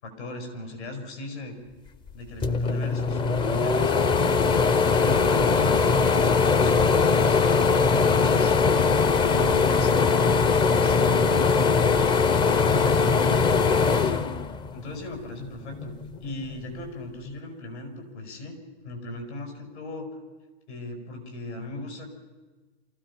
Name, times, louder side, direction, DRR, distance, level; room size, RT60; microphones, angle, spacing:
voice 1, 0.0-1.5 2.1-10.1 10.6-12.0 12.5-14.3 14.7-16.0 16.2-18.5 18.8-20.1 20.7-22.1, left 2 dB, 75° left, 3 dB, 7.1 m, -38 dB
sound 1, 2.1-2.2 2.4-15.0 15.4-16.6, left 5 dB, 15° left, 0.5 m, -21 dB
28.0 x 16.0 x 5.8 m, 1.3 s
hypercardioid pair, 130°, 34 cm